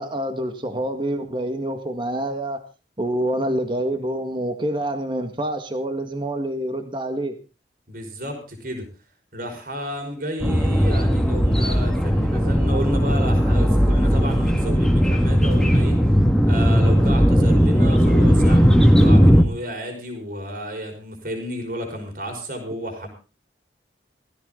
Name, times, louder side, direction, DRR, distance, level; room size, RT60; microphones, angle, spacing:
voice 1, 0.0-2.6 3.0-7.3, right 1 dB, 25° right, 6 dB, 1.8 m, -26 dB
voice 2, 7.9-8.9 9.3-16.0 16.4-23.1, equal, 50° right, 4 dB, 5.3 m, -32 dB
sound 1, 10.4-19.4, equal, 5° left, 1.9 m, -17 dB
17.0 x 15.5 x 3.9 m, 0.33 s
head